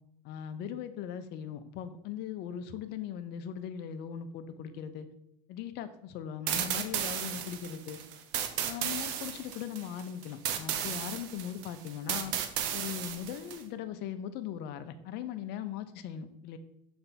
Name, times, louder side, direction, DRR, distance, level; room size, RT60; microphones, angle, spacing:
voice 1, 0.2-5.1 5.5-8.0 8.6-12.3 12.7-16.6, left 9 dB, 55° left, 11 dB, 0.6 m, -39 dB
sound 1, 6.5-13.6, right 9 dB, 60° right, 0.7 m, -34 dB
6.6 x 3.4 x 4.1 m, 0.79 s
supercardioid pair, 110°, 21 cm